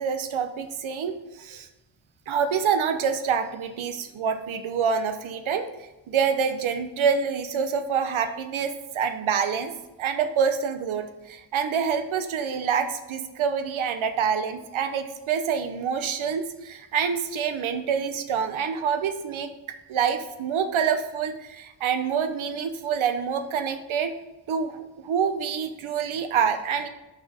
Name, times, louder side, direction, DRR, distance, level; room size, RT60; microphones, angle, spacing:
voice 1, 0.0-1.7 2.3-5.7 6.1-9.7 10.0-19.5 19.9-24.1 24.5-26.9, right 7 dB, 85° right, 8 dB, 0.8 m, -26 dB
6.3 x 4.3 x 4.8 m, 1.0 s
wide cardioid pair, 85°, 46 cm